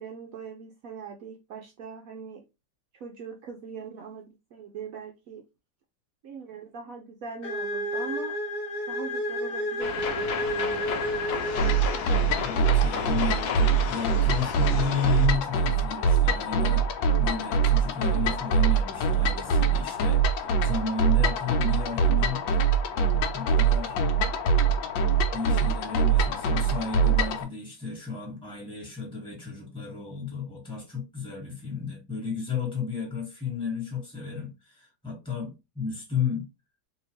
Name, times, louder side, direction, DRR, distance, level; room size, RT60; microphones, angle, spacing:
voice 1, 0.0-2.4 2.9-4.2 4.5-5.4 6.2-8.4 8.9-10.9, right 5 dB, 70° right, 0.8 m, -41 dB
sound 1, 7.4-12.3, left 1 dB, 45° left, 1.0 m, -31 dB
sound 2, 9.8-15.3, left 6 dB, 65° left, 1.1 m, -33 dB
sound 3, 11.6-27.4, right 5 dB, 85° left, 1.4 m, -24 dB
voice 2, 12.4-16.9 17.2-22.4 23.3-24.0 25.3-36.5, left 5 dB, 5° left, 1.4 m, -33 dB
3.5 x 2.8 x 3.0 m
omnidirectional pair, 2.0 m